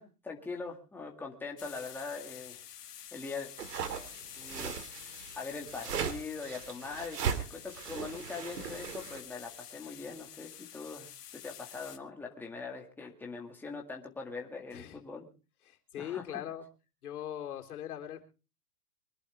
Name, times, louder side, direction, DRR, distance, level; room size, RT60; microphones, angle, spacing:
voice 1, 0.0-2.6 3.1-3.5 4.4-15.3 16.0-16.4, left 4 dB, 5° left, 0 dB, 1.9 m, -42 dB
sound 1, 1.6-12.0, left 10 dB, 90° left, 2.1 m, -49 dB
sound 2, 3.6-9.2, right 7 dB, 90° right, 2.4 m, -38 dB
voice 2, 15.7-16.7 17.0-18.2, left 11 dB, 70° left, 4 dB, 3.7 m, -40 dB
24.5 x 11.0 x 3.4 m, 0.33 s
hypercardioid pair, 165°, 46 cm